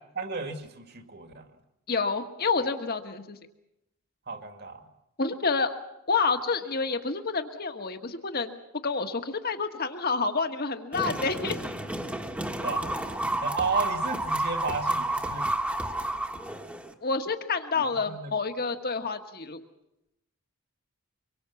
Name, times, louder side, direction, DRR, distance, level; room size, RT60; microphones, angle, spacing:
voice 1, 0.2-1.5 4.3-4.8 12.6-12.9 13.4-15.6 17.8-18.3, right 4 dB, 45° right, 7 dB, 2.1 m, -33 dB
voice 2, 1.9-3.4 5.2-5.7 6.1-11.6 17.0-19.6, left 4 dB, 45° left, 7 dB, 1.6 m, -28 dB
sound 1, 10.9-16.9, right 1 dB, 5° right, 1.4 m, -31 dB
25.0 x 23.0 x 7.1 m, 0.87 s
head